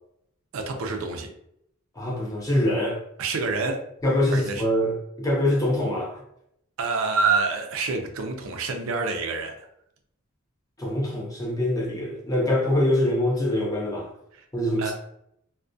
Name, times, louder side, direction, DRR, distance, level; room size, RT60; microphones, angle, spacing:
voice 1, 0.5-1.3 3.2-3.8 4.3-4.6 6.8-9.7 14.3-14.4 14.8-14.9, right 4 dB, 70° right, 4 dB, 0.4 m, -27 dB
voice 2, 2.0-3.0 4.0-6.2 10.8-14.1 14.5-14.9, left 1 dB, 15° left, -3 dB, 0.6 m, -24 dB
2.3 x 2.1 x 2.5 m, 0.75 s
head